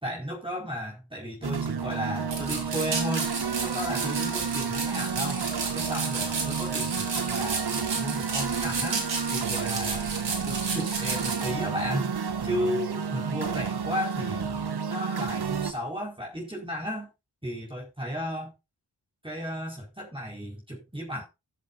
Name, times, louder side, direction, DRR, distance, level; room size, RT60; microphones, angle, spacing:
voice 1, 0.0-3.3 3.6-5.5 5.7-10.1 10.4-12.1 12.4-14.6 14.9-17.1 17.4-18.5 19.2-21.2, equal, 10° right, -2 dB, 4.6 m, -34 dB
sound 1, 1.4-15.7, right 6 dB, 60° right, 1.2 m, -31 dB
sound 2, 2.3-11.5, right 4 dB, 90° right, 3.6 m, -33 dB
17.5 x 7.9 x 2.6 m, 0.24 s
wide cardioid pair, 65°, 43 cm